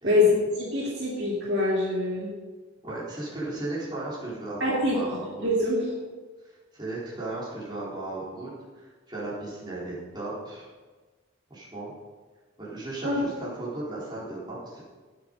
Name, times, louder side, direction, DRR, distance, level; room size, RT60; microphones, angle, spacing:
voice 1, 0.0-2.3 4.6-5.9 13.0-13.2, left 2 dB, 55° right, -3 dB, 2.0 m, -25 dB
voice 2, 2.8-5.5 6.4-10.7 11.5-11.9 12.6-14.8, right 2 dB, 20° right, -7 dB, 4.0 m, -36 dB
17.0 x 7.8 x 5.4 m, 1.3 s
head